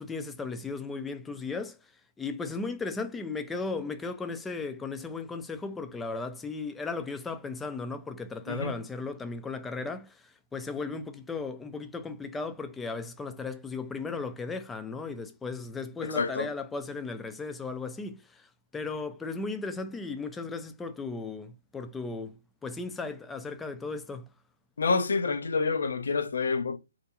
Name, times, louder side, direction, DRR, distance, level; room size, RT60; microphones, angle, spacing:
voice 1, 0.0-1.8 2.2-22.4 22.6-24.3, left 4 dB, 10° left, 0.3 m, -36 dB
voice 2, 16.0-16.5 24.8-26.8, left 4 dB, 75° left, 0.5 m, -28 dB
2.4 x 2.1 x 2.8 m
hypercardioid pair, 145°, 0 cm